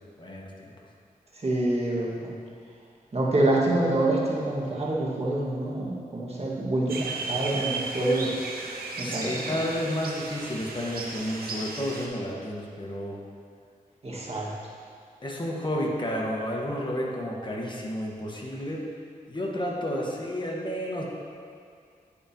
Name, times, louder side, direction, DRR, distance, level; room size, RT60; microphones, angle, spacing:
voice 1, 0.2-0.7 9.0-13.2 15.2-18.9 19.3-21.0, equal, 30° left, -2 dB, 1.3 m, -31 dB
voice 2, 1.4-2.3 3.1-8.3 9.0-9.6 14.0-14.5, right 2 dB, 45° right, -5 dB, 1.7 m, -26 dB
sound 1, 6.9-12.1, right 3 dB, 85° right, 0.7 m, -35 dB
10.0 x 5.1 x 2.9 m, 2.3 s
cardioid pair, 55°, 15 cm